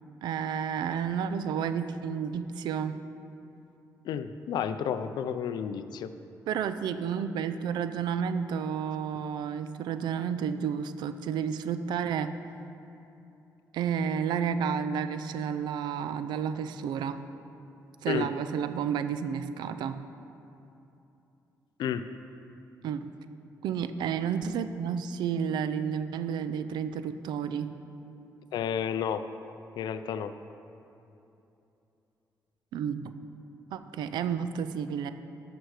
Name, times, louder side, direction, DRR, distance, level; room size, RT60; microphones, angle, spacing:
voice 1, 0.2-3.0 6.5-12.4 13.7-17.2 18.0-20.0 22.8-23.2 23.6-27.7 32.7-33.1 33.7-35.1, right 7 dB, 85° right, 11 dB, 0.4 m, -31 dB
voice 2, 4.0-6.1 18.1-18.3 21.8-22.0 28.5-29.2 29.8-30.3, left 8 dB, 80° left, 11 dB, 0.5 m, -31 dB
12.5 x 6.1 x 4.8 m, 2.9 s
cardioid pair, 75°, 7 cm